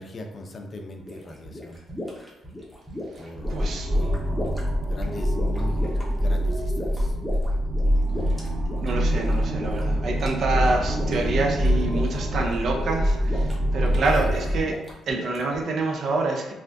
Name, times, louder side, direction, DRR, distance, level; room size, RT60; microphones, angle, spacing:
voice 1, 0.0-1.8 3.2-4.4 4.7-7.2 14.3-14.7, left 2 dB, 40° left, 4 dB, 0.4 m, -40 dB
sound 1, 1.0-15.6, left 1 dB, 5° right, 0.9 m, -37 dB
sound 2, 3.4-14.6, equal, 40° right, 0.9 m, -25 dB
voice 2, 3.5-3.9 8.8-14.8 15.1-16.5, right 3 dB, 60° right, 2 dB, 0.5 m, -27 dB
3.3 x 2.4 x 2.6 m, 0.98 s
cardioid pair, 90°, 0 cm